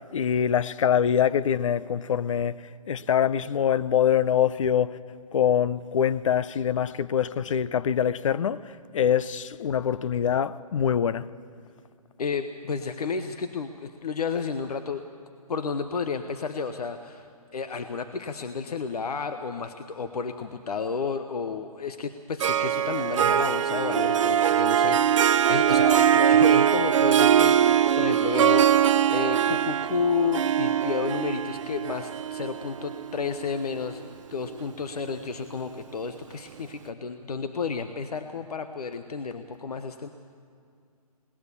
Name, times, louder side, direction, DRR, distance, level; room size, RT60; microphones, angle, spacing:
voice 1, 0.0-5.0 5.3-11.3, left 8 dB, 55° left, 0.7 m, -24 dB
voice 2, 12.2-15.0 15.5-17.3 17.5-28.9 29.1-40.1, left 5 dB, 75° left, 1.1 m, -31 dB
Harp, 22.4-33.8, right 9 dB, 55° right, 0.6 m, -22 dB
21.0 x 19.0 x 7.1 m
hypercardioid pair, 155°, 20 cm